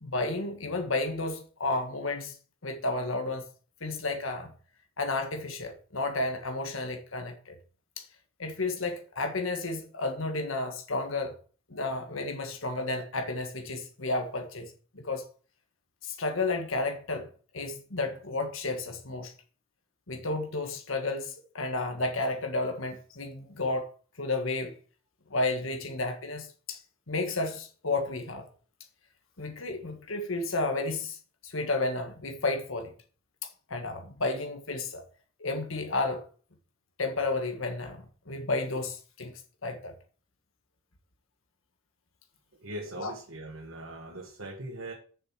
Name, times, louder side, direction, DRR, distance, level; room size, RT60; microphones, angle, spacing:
voice 1, 0.0-2.4 2.6-3.4 3.8-4.5 5.0-7.6 8.0-8.1 8.4-11.3 11.7-15.2 16.0-17.3 17.5-19.3 20.1-23.9 24.2-24.7 25.3-26.8 27.1-28.5 29.4-31.2 31.4-32.9 33.4-35.0 35.4-36.2 37.0-39.3 39.6-39.9 43.0-43.1, left 2 dB, 75° left, 1.7 m, -32 dB
voice 2, 42.6-44.9, right 1 dB, 80° right, 1.8 m, -40 dB
7.0 x 6.8 x 6.1 m
head